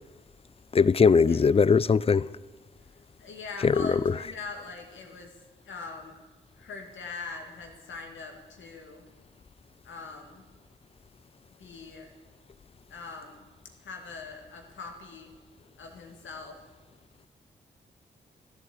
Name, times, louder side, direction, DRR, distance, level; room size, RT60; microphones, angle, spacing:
voice 1, 0.7-2.3 3.6-3.9, left 5 dB, 30° left, 0.4 m, -20 dB
voice 2, 3.2-5.3 5.6-6.2 6.6-9.1 9.8-10.4 11.6-12.1 12.9-13.4 13.8-15.3 15.8-16.6, left 4 dB, 80° left, 2.2 m, -42 dB
13.5 x 8.2 x 8.6 m
supercardioid pair, 40°, 20 cm